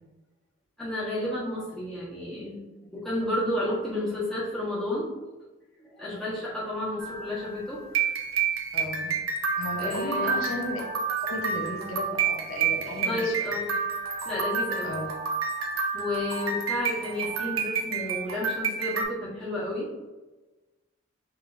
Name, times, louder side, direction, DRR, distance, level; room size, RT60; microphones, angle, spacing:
voice 1, 0.8-2.6 2.9-5.1 5.8-8.1 9.8-10.4 13.0-13.7 14.2-14.9 15.9-20.1, left 1 dB, ahead, -9 dB, 1.3 m, -31 dB
sound 1, 7.0-19.0, right 5 dB, 80° right, 0.6 m, -29 dB
voice 2, 8.7-9.1 9.5-10.8 11.2-13.3 14.8-15.1, left 2 dB, 75° left, 0 dB, 0.8 m, -34 dB
6.0 x 3.1 x 2.6 m, 1.2 s
head